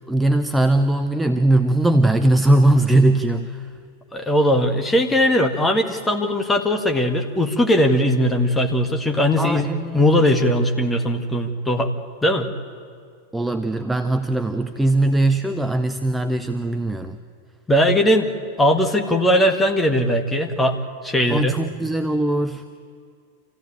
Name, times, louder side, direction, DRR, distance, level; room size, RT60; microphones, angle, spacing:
voice 1, 0.1-3.7 9.4-10.0 13.3-17.2 21.3-22.6, right 1 dB, 5° right, 8 dB, 0.7 m, -20 dB
voice 2, 4.1-9.7 9.9-11.9 12.2-12.5 17.7-18.3 18.6-21.5, equal, 10° left, 4 dB, 1.8 m, -19 dB
26.0 x 15.5 x 9.1 m, 2.2 s
figure-of-eight pair, 90°, 0 cm